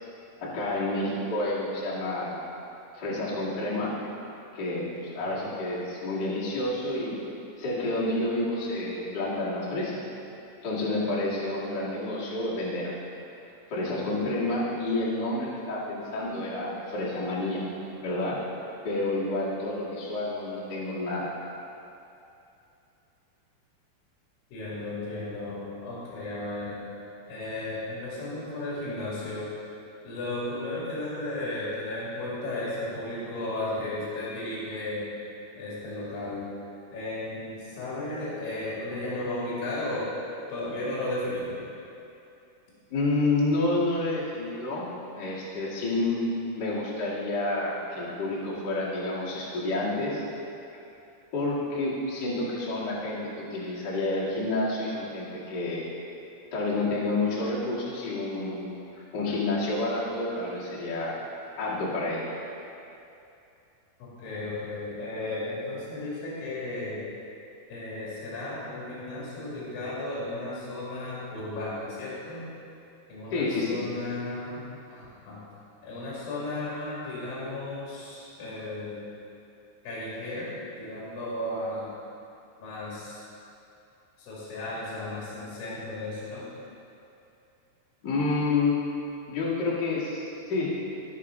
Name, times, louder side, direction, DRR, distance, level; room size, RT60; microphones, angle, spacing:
voice 1, 0.4-2.4 2.9-3.9 4.5-7.2 7.6-10.0 10.6-12.9 13.7-17.6 18.0-18.4 18.8-21.3 42.9-44.9 45.2-46.2 46.5-50.2 51.3-55.8 56.5-58.7 59.1-61.2 61.6-62.3 73.3-73.8 88.0-88.8 89.3-90.7, left 2 dB, 85° left, -7 dB, 0.9 m, -29 dB
voice 2, 5.2-5.5 5.8-5.9 24.5-26.8 27.3-29.5 30.0-35.1 35.5-36.5 36.9-40.1 40.5-41.6 64.0-67.0 67.7-72.5 73.1-74.7 74.9-75.4 75.8-79.0 79.8-80.5 80.8-81.9 82.6-83.2 84.2-86.5, left 2 dB, 55° left, -7 dB, 3.5 m, -34 dB
17.0 x 6.5 x 3.7 m, 2.7 s
omnidirectional pair, 5.6 m